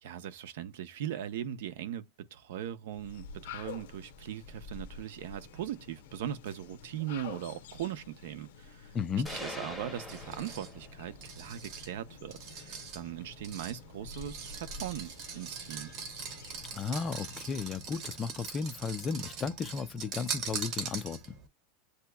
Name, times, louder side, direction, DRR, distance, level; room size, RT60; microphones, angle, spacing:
voice 1, 0.0-15.9, right 10 dB, 65° right, 0.7 m, -40 dB
sound 1, 2.9-17.8, left 6 dB, 80° left, 0.7 m, -49 dB
voice 2, 8.9-9.3 16.7-21.2, left 5 dB, 20° left, 0.4 m, -34 dB
sound 2, 9.3-11.2, left 1 dB, 5° right, 0.9 m, -43 dB
sound 3, 10.1-21.5, right 6 dB, 35° right, 0.9 m, -42 dB
8.0 x 2.8 x 2.2 m
supercardioid pair, 175°, 0 cm